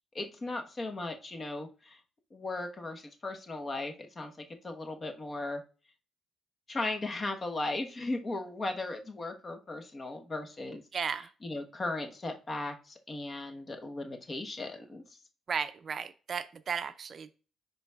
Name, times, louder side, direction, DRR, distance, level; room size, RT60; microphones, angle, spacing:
voice 1, 0.1-2.0 2.3-5.6 6.7-15.2, left 2 dB, 30° left, 5 dB, 1.1 m, -37 dB
voice 2, 10.9-11.3 15.5-17.3, right 6 dB, 50° right, 12 dB, 0.5 m, -34 dB
10.5 x 4.0 x 2.3 m, 0.37 s
cardioid pair, 90°, 0 cm